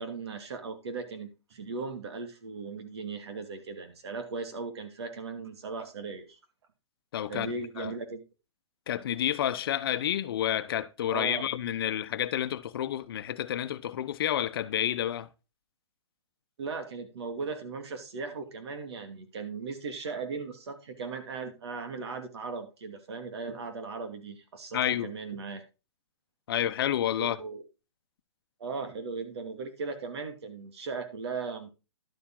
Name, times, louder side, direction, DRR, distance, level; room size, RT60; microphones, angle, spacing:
voice 1, 0.0-6.4 7.3-8.2 11.1-11.5 16.6-25.6 27.2-27.6 28.6-31.7, right 4 dB, 65° right, 2.4 m, -38 dB
voice 2, 7.1-7.9 8.9-15.3 24.7-25.1 26.5-27.4, left 11 dB, 55° left, 0.9 m, -30 dB
11.5 x 7.1 x 3.8 m
hypercardioid pair, 155°, 15 cm